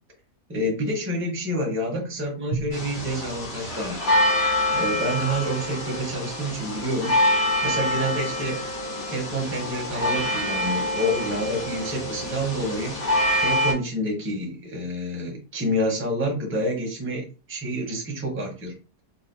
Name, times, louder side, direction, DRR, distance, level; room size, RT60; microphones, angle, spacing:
voice 1, 0.5-4.0 4.7-7.1 7.6-8.6 9.1-13.0 13.4-18.8, equal, 10° right, 0 dB, 0.6 m, -28 dB
Drum, 2.5-5.5, right 6 dB, 80° right, 1.2 m, -39 dB
sound 1, 2.7-13.7, left 1 dB, 90° left, 2.0 m, -26 dB
4.0 x 2.3 x 2.6 m, 0.34 s
omnidirectional pair, 1.7 m